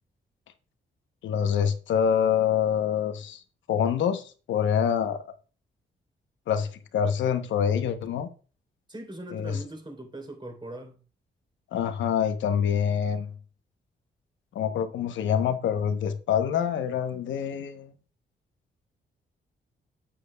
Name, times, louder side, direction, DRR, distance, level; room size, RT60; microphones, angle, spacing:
voice 1, 1.2-3.4 3.7-5.2 6.5-6.7 6.9-8.3 9.3-9.6 11.7-13.3 14.5-17.9, left 8 dB, 85° left, 0.9 m, -26 dB
voice 2, 8.9-11.0, right 1 dB, 25° right, 3.3 m, -40 dB
8.6 x 8.6 x 2.3 m
cardioid pair, 65°, 19 cm